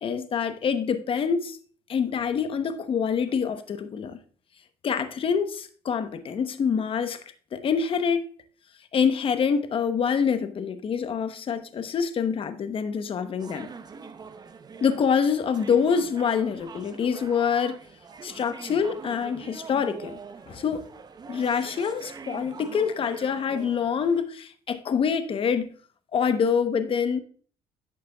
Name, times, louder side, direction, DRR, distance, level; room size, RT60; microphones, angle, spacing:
voice 1, 0.0-1.6 1.9-4.2 4.8-7.2 7.5-8.3 8.9-13.7 14.8-17.8 18.2-20.2 20.5-20.8 21.3-25.7 26.1-27.2, left 6 dB, 45° left, 0.9 m, -26 dB
sound 1, 13.4-24.2, right 5 dB, 30° right, 0.7 m, -44 dB
11.0 x 6.6 x 2.3 m
supercardioid pair, 85°, 13 cm